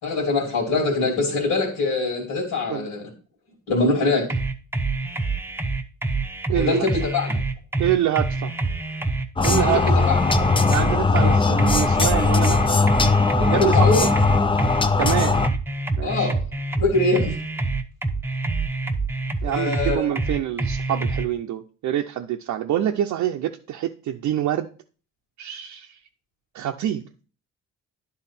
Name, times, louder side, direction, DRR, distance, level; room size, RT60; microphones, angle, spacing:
voice 1, 0.0-3.1 3.7-4.3 6.5-7.4 9.6-10.2 11.2-11.4 13.4-14.1 16.0-16.4 16.8-17.4 19.4-20.1, left 3 dB, 75° left, -1 dB, 2.6 m, -23 dB
sound 1, 4.3-21.3, right 3 dB, 10° right, 0.8 m, -26 dB
voice 2, 6.5-6.9 7.8-8.5 9.4-9.8 10.7-12.8 13.5-14.1 15.0-15.5 16.0-16.3 19.4-24.7 25.4-26.0 26.5-27.0, right 11 dB, 70° right, 2 dB, 0.6 m, -26 dB
sound 2, 9.4-15.5, left 4 dB, 15° left, 0.5 m, -19 dB
10.0 x 3.7 x 5.8 m, 0.38 s
cardioid pair, 90°, 30 cm